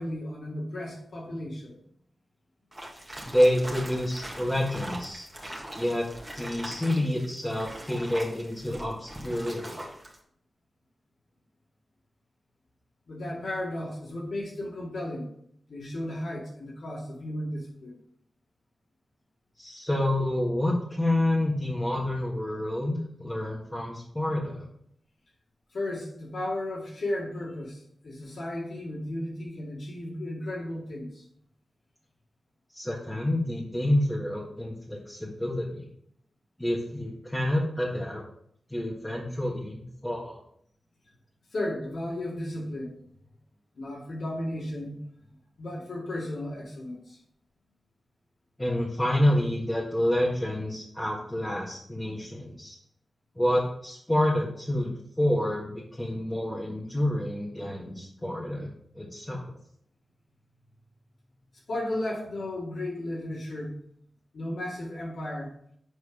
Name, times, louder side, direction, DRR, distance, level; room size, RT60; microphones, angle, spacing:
voice 1, 0.0-1.8 13.1-15.3 15.7-17.9 25.7-31.2 41.5-43.0 43.8-45.0 45.6-47.2 61.7-63.7 64.3-65.6, left 1 dB, 75° left, -5 dB, 2.5 m, -34 dB
sound 1, 2.7-10.2, right 1 dB, 15° right, 1.7 m, -41 dB
voice 2, 3.2-5.3 5.8-6.1 6.3-9.9 19.6-24.6 32.7-35.9 36.6-38.2 38.7-40.4 48.6-52.8 53.3-59.6, left 1 dB, 10° left, -5 dB, 1.6 m, -28 dB
7.1 x 4.8 x 4.9 m, 0.67 s
wide cardioid pair, 85°, 0 cm